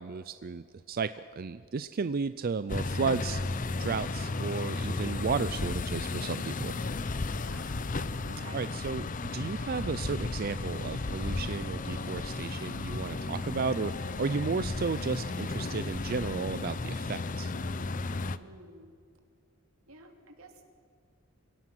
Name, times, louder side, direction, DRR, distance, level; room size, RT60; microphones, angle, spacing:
voice 1, 0.0-3.4 3.8-6.8 8.5-17.5, right 5 dB, 45° right, 13 dB, 0.4 m, -33 dB
sound 1, 2.7-18.4, left 3 dB, 40° left, 0.6 m, -34 dB
voice 2, 7.4-7.9 8.3-8.6 18.4-18.9 19.9-20.6, right 2 dB, 75° right, 4 dB, 2.8 m, -50 dB
27.0 x 17.0 x 6.1 m, 2.3 s
head